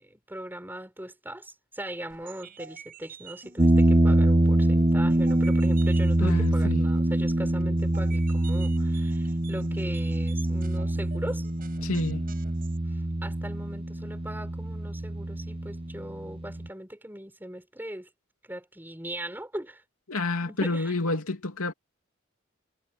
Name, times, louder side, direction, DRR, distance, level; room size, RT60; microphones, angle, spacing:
voice 1, 0.0-11.5 12.9-18.1 18.4-19.8 20.4-20.9, right 1 dB, 10° right, 4.7 m, -39 dB
sound 1, 2.1-12.8, right 5 dB, 40° right, 7.2 m, -49 dB
sound 2, 3.6-16.7, right 1 dB, 25° right, 0.8 m, -25 dB
voice 2, 6.2-6.9 11.8-12.2 20.1-21.7, left 2 dB, 85° left, 2.8 m, -29 dB
head